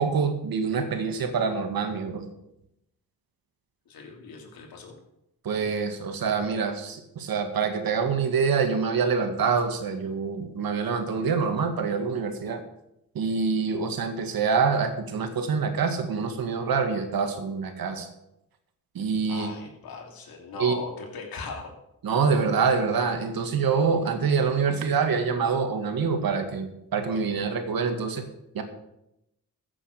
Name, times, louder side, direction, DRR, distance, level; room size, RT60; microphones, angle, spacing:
voice 1, 0.0-2.3 5.4-12.6 13.2-18.1 18.9-19.5 20.6-20.8 22.0-28.2 28.5-28.6, right 5 dB, 75° right, 6 dB, 2.0 m, -26 dB
voice 2, 3.9-5.0 19.3-21.7, left 4 dB, 80° left, 1 dB, 3.0 m, -39 dB
14.5 x 7.6 x 6.7 m, 0.84 s
cardioid pair, 75°, 36 cm